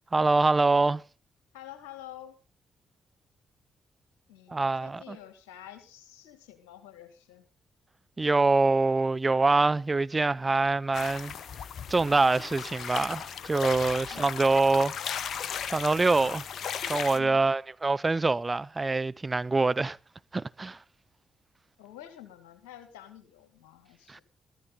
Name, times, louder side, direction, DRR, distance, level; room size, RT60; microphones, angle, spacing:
voice 1, 0.1-1.0 4.5-5.2 8.2-11.3 11.9-14.9 15.7-16.5 16.9-20.0 20.3-20.8 24.1-24.2, right 3 dB, 30° right, 0.6 m, -25 dB
voice 2, 1.5-2.4 4.3-7.4 14.1-14.3 17.1-17.4 21.8-24.2, left 12 dB, 80° left, 1.9 m, -48 dB
sound 1, 10.9-17.2, left 8 dB, 65° left, 0.9 m, -36 dB
14.0 x 14.0 x 4.0 m
hypercardioid pair, 40°, 0 cm